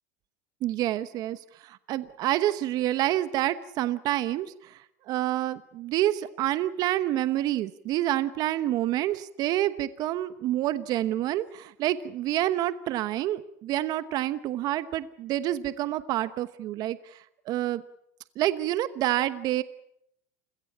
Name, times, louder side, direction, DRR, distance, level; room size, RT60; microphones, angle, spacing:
voice 1, 0.6-17.8 18.4-19.6, right 14 dB, 55° right, 14 dB, 1.1 m, -28 dB
29.0 x 17.0 x 8.7 m, 0.76 s
supercardioid pair, 110°, 8 cm